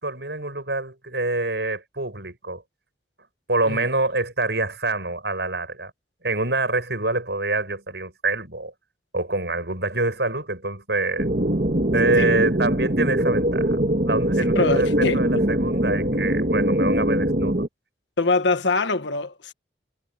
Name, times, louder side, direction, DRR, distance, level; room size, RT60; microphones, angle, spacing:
voice 1, 0.0-2.6 3.5-5.9 6.2-8.7 9.1-11.3 11.9-13.8 14.1-17.7, right 2 dB, 70° right, 6.6 m, -26 dB
sound 1, 11.2-17.7, right 1 dB, 50° right, 2.0 m, -22 dB
voice 2, 14.5-15.4 18.2-19.5, left 3 dB, 90° left, 1.6 m, -24 dB
head